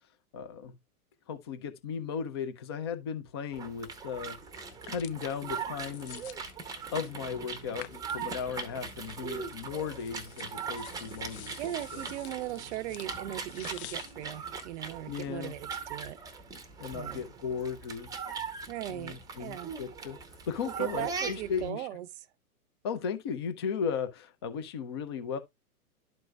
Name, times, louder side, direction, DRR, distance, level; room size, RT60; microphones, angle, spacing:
voice 1, 0.3-0.8 1.3-4.4 4.9-6.3 6.9-11.5 11.9-12.0 15.1-15.6 16.8-18.1 18.9-20.2 20.5-21.9 22.8-25.4, left 6 dB, 20° left, 0.3 m, -36 dB
sound 1, 3.5-21.7, right 5 dB, 10° right, 0.7 m, -40 dB
sound 2, 4.7-15.5, left 12 dB, 45° left, 0.7 m, -51 dB
voice 2, 11.6-16.2 16.9-17.2 18.7-19.7 20.6-22.1, right 13 dB, 50° right, 0.6 m, -38 dB
12.0 x 4.5 x 2.3 m
hypercardioid pair, 120°, 46 cm